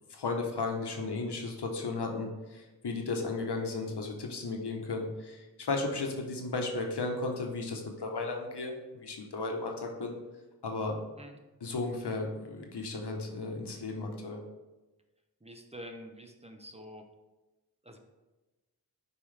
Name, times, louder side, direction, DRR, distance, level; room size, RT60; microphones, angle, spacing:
voice 1, 0.1-10.1 10.6-11.0 11.6-14.4, left 3 dB, 80° left, 2 dB, 1.2 m, -35 dB
voice 2, 15.4-17.0 17.8-18.0, equal, 15° right, 4 dB, 0.8 m, -47 dB
8.8 x 4.8 x 3.4 m, 1.1 s
wide cardioid pair, 80°, 40 cm